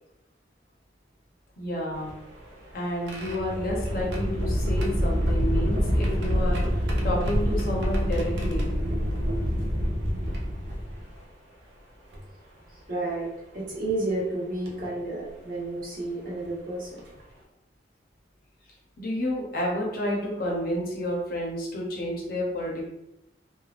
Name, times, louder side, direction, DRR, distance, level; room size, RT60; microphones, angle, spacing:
voice 1, 1.6-2.1 2.7-6.6 7.0-8.7 19.0-22.8, equal, 50° left, -2 dB, 0.7 m, -30 dB
sound 1, 2.0-11.2 12.1-12.2 13.7-13.9 14.7-14.9 16.5-16.6 17.0-17.2, equal, 70° right, 0.6 m, -27 dB
voice 2, 12.7-17.0, right 2 dB, 45° right, -6 dB, 1.0 m, -31 dB
3.2 x 2.2 x 2.4 m, 0.89 s
head